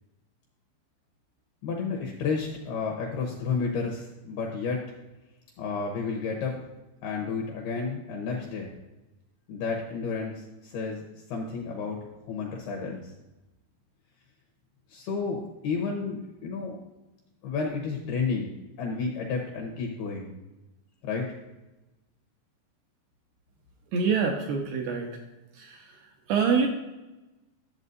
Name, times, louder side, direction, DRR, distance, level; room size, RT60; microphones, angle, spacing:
voice 1, 1.6-4.9 5.6-6.6 7.0-8.7 9.5-12.0 12.3-13.1 14.9-16.8 17.4-20.3 21.0-21.3, left 5 dB, 75° left, 0 dB, 2.4 m, -31 dB
voice 2, 23.9-25.2 25.5-26.7, right 5 dB, 85° right, 2 dB, 2.3 m, -26 dB
12.0 x 7.2 x 2.6 m, 1.0 s
omnidirectional pair, 5.6 m